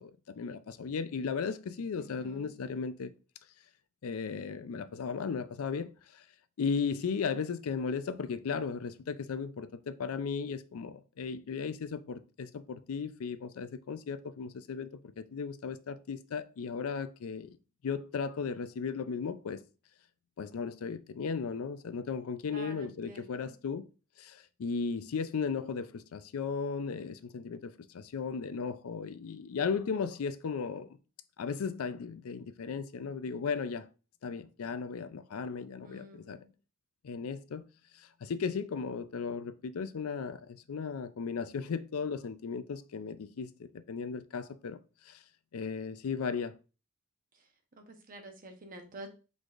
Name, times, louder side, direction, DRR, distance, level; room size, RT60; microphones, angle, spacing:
voice 1, 0.0-3.1 4.0-6.2 6.6-17.6 17.8-19.6 20.4-23.8 24.2-30.9 31.4-33.9 34.2-36.4 37.0-37.6 37.9-44.8 45.1-45.2 45.5-46.5, left 5 dB, 75° left, 0.4 m, -36 dB
voice 2, 2.0-2.5 22.5-23.5 35.8-36.5 47.8-49.1, right 1 dB, 40° right, 0.9 m, -48 dB
4.8 x 4.0 x 2.4 m
head